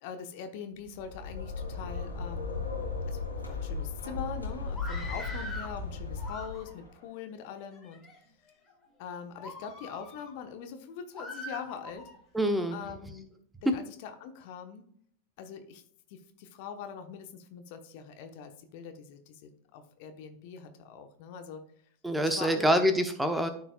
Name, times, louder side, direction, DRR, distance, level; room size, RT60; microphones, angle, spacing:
voice 1, 0.0-2.6 3.1-3.2 3.5-8.1 9.0-12.1 12.7-13.3 13.6-14.8 15.4-15.8 16.1-21.6 22.2-22.7, left 7 dB, 50° left, 7 dB, 1.0 m, -42 dB
sound 1, 0.9-6.9, left 4 dB, 85° left, 2.0 m, -36 dB
Screaming, 4.7-5.8 6.2-6.9 7.6-8.2 8.7-8.9 9.4-10.3 11.1-12.2, left 1 dB, 10° left, 2.1 m, -43 dB
voice 2, 12.3-12.8 22.0-23.5, equal, 5° right, 8 dB, 0.9 m, -26 dB
13.5 x 4.6 x 2.3 m, 0.63 s
figure-of-eight pair, 90°, 0 cm